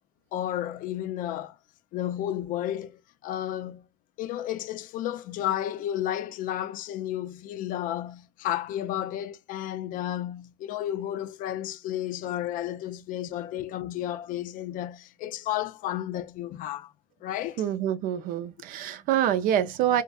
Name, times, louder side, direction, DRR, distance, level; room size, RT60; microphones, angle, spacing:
voice 1, 0.3-1.6 1.9-3.9 4.2-16.9 17.2-17.6, left 12 dB, 70° left, 0.4 m, -32 dB
voice 2, 17.6-20.0, right 10 dB, 75° right, 0.4 m, -26 dB
2.5 x 2.5 x 2.2 m
supercardioid pair, 65°, 14 cm